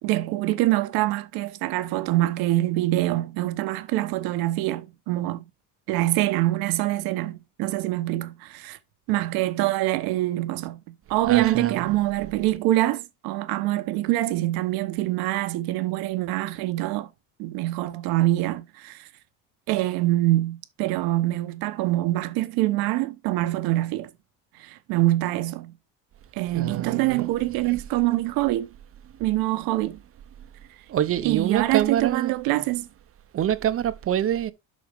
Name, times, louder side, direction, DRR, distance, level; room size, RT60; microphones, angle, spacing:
voice 1, 0.0-5.5 5.9-8.8 9.1-17.1 17.4-19.1 19.7-24.1 24.5-25.7 26.3-28.7 29.2-30.0 31.2-32.9, right 16 dB, 90° right, 1.1 m, -25 dB
voice 2, 11.2-12.0 26.5-27.2 30.9-32.3 33.3-34.5, right 10 dB, 40° right, 0.7 m, -25 dB
12.0 x 4.2 x 3.5 m
cardioid pair, 130°, 35 cm